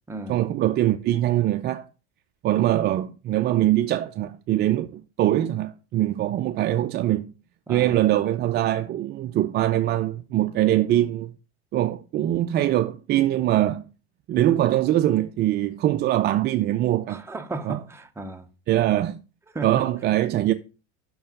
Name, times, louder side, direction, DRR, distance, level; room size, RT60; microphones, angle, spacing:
voice 1, 0.3-1.9 2.4-7.3 7.7-11.3 11.7-13.8 14.3-17.2 17.6-17.8 18.7-19.2 19.6-20.5, right 13 dB, 30° right, 0.4 m, -22 dB
voice 2, 7.7-8.0 17.1-18.5 19.5-19.9, right 2 dB, 10° right, 0.7 m, -34 dB
6.0 x 4.6 x 5.4 m
supercardioid pair, 115°, 34 cm